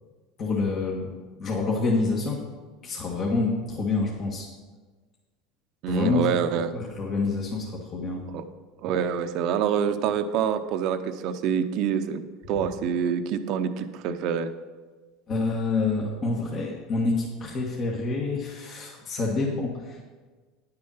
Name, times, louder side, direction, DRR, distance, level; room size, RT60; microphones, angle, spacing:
voice 1, 0.4-1.1 1.4-2.4 2.8-4.5 5.9-6.3 6.7-8.3 15.3-20.0, left 3 dB, 40° left, -3 dB, 1.7 m, -27 dB
voice 2, 5.8-6.7 8.3-8.4 8.8-12.2 12.5-14.5, right 7 dB, 60° right, 10 dB, 0.8 m, -26 dB
10.0 x 6.7 x 5.7 m, 1.4 s
supercardioid pair, 105°, 0 cm